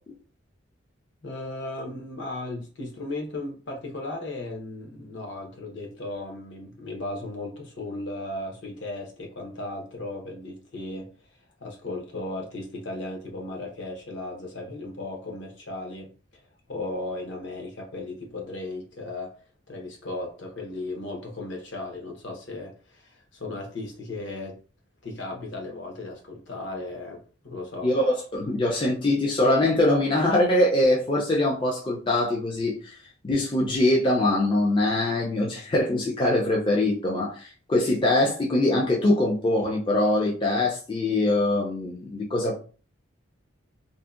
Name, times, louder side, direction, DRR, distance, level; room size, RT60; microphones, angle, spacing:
voice 1, 1.2-11.1 11.6-16.4 16.7-19.3 19.7-24.6 25.0-27.9, left 2 dB, 65° left, 0.7 m, -36 dB
voice 2, 27.8-33.0 33.2-42.6, left 1 dB, 25° left, 0.3 m, -23 dB
2.6 x 2.1 x 2.3 m
head